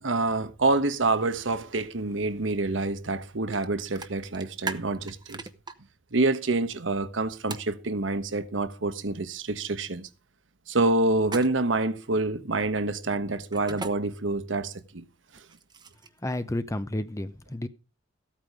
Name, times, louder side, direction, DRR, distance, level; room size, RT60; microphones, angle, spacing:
voice 1, 0.0-5.4 6.1-10.0 10.7-15.0, right 2 dB, 80° right, 1.2 m, -27 dB
sound 1, 3.5-3.7 4.0-5.7 7.5-7.7 11.2-11.8 13.5-13.9 15.3-16.2, right 4 dB, 25° right, 1.0 m, -37 dB
voice 2, 16.2-17.7, left 1 dB, 15° left, 0.7 m, -31 dB
14.5 x 8.9 x 4.9 m
head